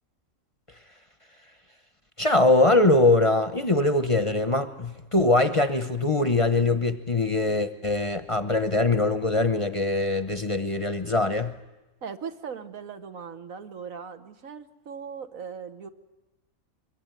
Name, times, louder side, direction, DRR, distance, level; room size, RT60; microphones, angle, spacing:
voice 1, 0.7-1.6 2.2-11.6, left 2 dB, 30° left, 0.8 m, -23 dB
voice 2, 12.0-15.9, right 6 dB, 85° right, 1.7 m, -39 dB
23.0 x 22.5 x 9.2 m
omnidirectional pair, 1.4 m